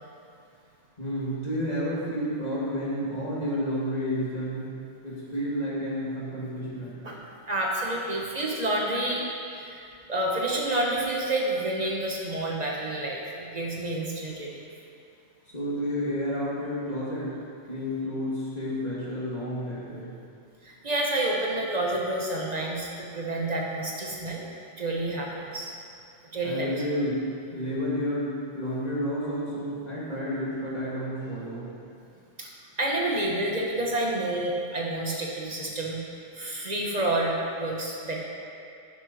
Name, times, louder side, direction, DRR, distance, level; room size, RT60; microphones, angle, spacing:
voice 1, 1.0-4.7 5.0-7.0 15.5-17.4 17.7-20.2 26.4-31.7, equal, 35° left, -8 dB, 2.8 m, -31 dB
voice 2, 7.5-9.3 9.5-9.8 10.1-14.6 20.6-24.5 24.8-25.7 26.3-26.7 32.4-32.5 32.8-36.0 36.3-38.2, right 1 dB, 35° right, -2 dB, 1.7 m, -29 dB
12.0 x 9.5 x 4.6 m, 2.5 s
omnidirectional pair, 1.2 m